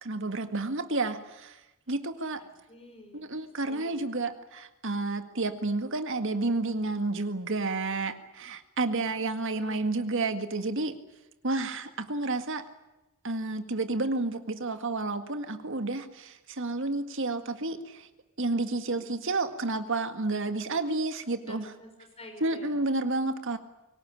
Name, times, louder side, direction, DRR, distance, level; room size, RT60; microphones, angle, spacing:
voice 1, 0.0-1.6 1.9-2.4 3.1-11.0 11.4-12.7 13.2-18.1 18.4-21.7 22.4-23.6, right 2 dB, 65° right, 9 dB, 1.9 m, -30 dB
voice 2, 2.7-4.0 9.6-9.8 21.4-22.8, left 1 dB, 30° left, 4 dB, 5.9 m, -49 dB
23.5 x 18.5 x 9.9 m, 0.98 s
head